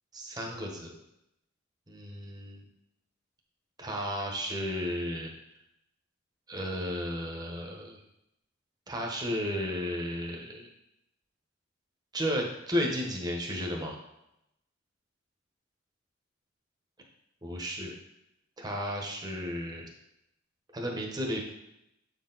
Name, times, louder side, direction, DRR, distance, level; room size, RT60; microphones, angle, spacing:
voice 1, 0.1-0.9 1.9-2.6 3.8-5.3 6.5-8.0 8.9-10.7 12.1-13.9 17.4-17.9 18.6-19.8 20.7-21.4, equal, 20° right, 0 dB, 1.1 m, -33 dB
8.1 x 4.5 x 4.0 m, 0.84 s
head